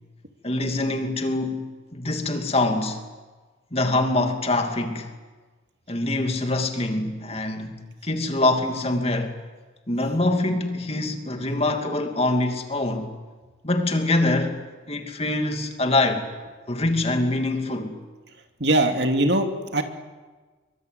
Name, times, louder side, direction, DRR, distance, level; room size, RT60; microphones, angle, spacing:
voice 1, 0.4-3.0 3.7-5.1 5.9-9.3 9.9-13.1 13.6-14.6 14.9-16.3 16.7-18.0, left 2 dB, 30° left, 2.7 m, -24 dB
voice 2, 18.6-19.8, right 1 dB, 60° right, 2.8 m, -21 dB
26.0 x 24.0 x 9.5 m
head